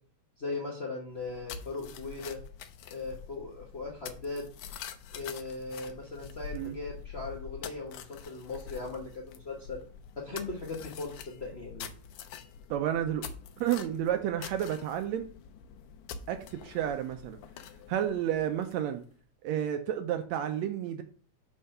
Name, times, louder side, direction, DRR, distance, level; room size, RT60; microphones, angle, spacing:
voice 1, 0.4-2.4 2.9-4.4 5.1-9.8 10.2-11.9, left 3 dB, 70° left, -2 dB, 0.6 m, -38 dB
sound 1, 1.1-19.0, left 8 dB, 85° left, 2.1 m, -46 dB
voice 2, 12.7-13.3 13.6-15.3 16.3-17.4 17.9-19.0 19.4-21.0, right 10 dB, 80° right, 8 dB, 1.8 m, -31 dB
5.8 x 5.4 x 5.3 m, 0.42 s
omnidirectional pair, 3.3 m